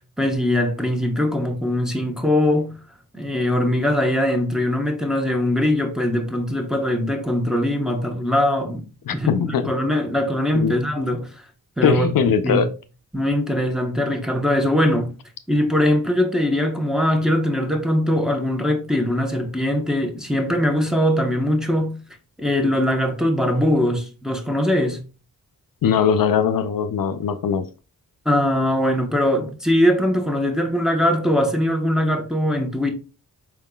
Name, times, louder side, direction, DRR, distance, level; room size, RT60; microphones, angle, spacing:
voice 1, 0.2-2.8 3.1-8.8 9.1-11.4 11.8-12.6 13.1-15.1 15.5-22.0 22.4-25.0 28.2-32.9, left 1 dB, ahead, 0.9 m, -21 dB
voice 2, 9.1-9.7 10.5-10.7 11.8-12.7 25.8-27.7, left 7 dB, 70° left, 0.5 m, -20 dB
4.7 x 3.6 x 2.2 m
cardioid pair, 70°, 36 cm